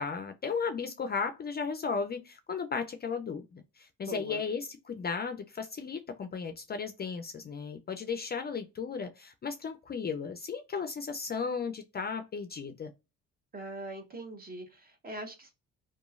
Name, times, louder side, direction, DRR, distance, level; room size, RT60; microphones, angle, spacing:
voice 1, 0.0-12.9, left 5 dB, 35° left, 0.4 m, -35 dB
voice 2, 4.1-4.4 13.5-15.5, right 1 dB, 30° right, 0.8 m, -42 dB
2.9 x 2.3 x 2.4 m
cardioid pair, 90°, 30 cm